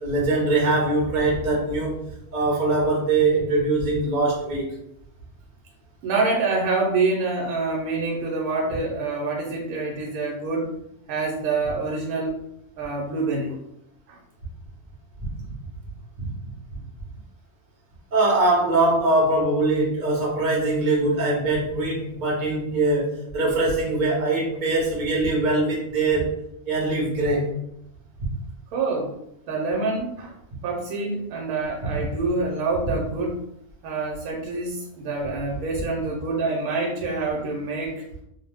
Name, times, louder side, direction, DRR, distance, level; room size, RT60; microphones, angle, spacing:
voice 1, 0.0-2.0 2.3-4.6 16.2-16.3 18.1-26.3 26.7-27.5, right 2 dB, 40° right, -3 dB, 0.7 m, -22 dB
voice 2, 6.0-10.7 11.1-12.4 12.8-13.6 14.1-14.2 28.7-29.2 29.5-30.4 30.6-33.5 33.8-38.0, right 3 dB, 80° right, -1 dB, 1.0 m, -26 dB
2.5 x 2.1 x 3.3 m, 0.77 s
omnidirectional pair, 1.6 m